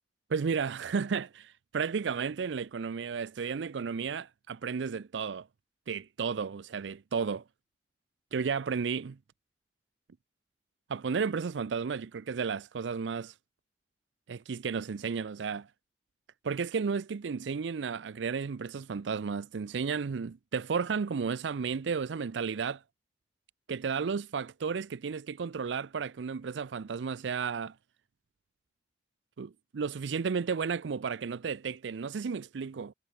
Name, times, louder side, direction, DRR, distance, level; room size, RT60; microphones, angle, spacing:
voice 1, 0.3-5.5 5.9-7.4 8.3-9.2 10.9-13.3 14.3-15.7 16.4-22.8 23.7-27.7 29.4-32.9, right 5 dB, 90° right, 0.5 m, -33 dB
head